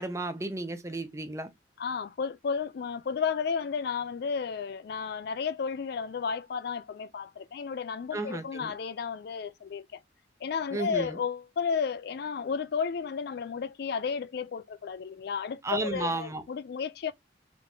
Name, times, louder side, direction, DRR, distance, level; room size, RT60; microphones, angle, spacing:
voice 1, 0.0-1.5 8.1-8.7 10.7-11.2 15.6-16.4, right 2 dB, 15° right, 0.6 m, -33 dB
voice 2, 1.8-10.0 10.4-17.1, left 6 dB, 55° left, 0.3 m, -33 dB
3.7 x 2.7 x 3.7 m
head